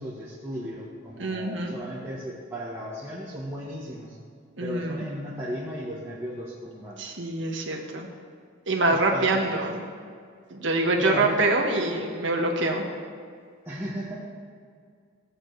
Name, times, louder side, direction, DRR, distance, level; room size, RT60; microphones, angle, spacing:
voice 1, 0.0-4.2 4.6-7.1 8.9-9.6 11.0-11.4 13.6-14.3, equal, 15° right, -8 dB, 1.3 m, -35 dB
voice 2, 1.2-1.7 4.6-5.1 7.0-8.1 8.7-9.8 10.5-12.8, right 2 dB, 65° right, 0 dB, 1.5 m, -25 dB
16.5 x 8.6 x 3.3 m, 2.1 s
head